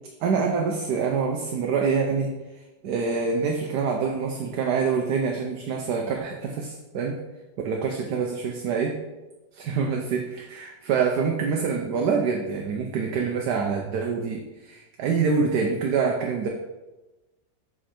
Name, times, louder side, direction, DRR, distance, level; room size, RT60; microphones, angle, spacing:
voice 1, 0.2-2.3 2.8-7.2 7.6-8.9 9.5-16.5, right 5 dB, 70° right, 1 dB, 1.3 m, -26 dB
7.6 x 4.5 x 4.4 m, 1.1 s
omnidirectional pair, 1.9 m